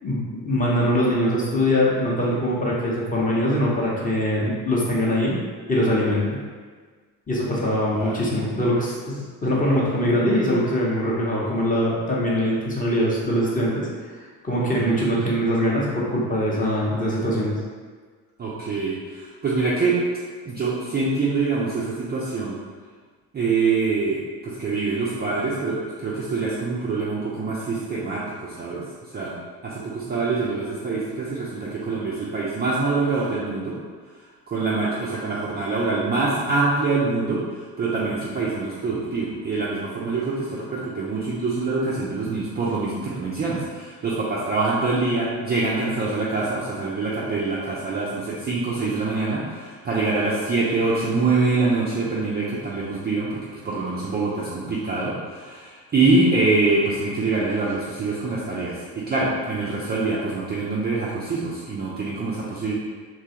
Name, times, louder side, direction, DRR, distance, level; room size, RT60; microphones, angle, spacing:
voice 1, 0.0-5.4 5.7-6.4 7.3-14.2 14.4-17.5, equal, 15° left, -5 dB, 0.8 m, -22 dB
voice 2, 7.9-8.3 14.6-15.0 18.4-20.0 20.5-22.6 23.3-28.8 29.1-29.3 29.6-33.8 34.5-37.4 37.8-62.7, right 3 dB, 20° right, -7 dB, 0.5 m, -25 dB
3.0 x 2.3 x 2.8 m, 1.5 s
hypercardioid pair, 60°, 48 cm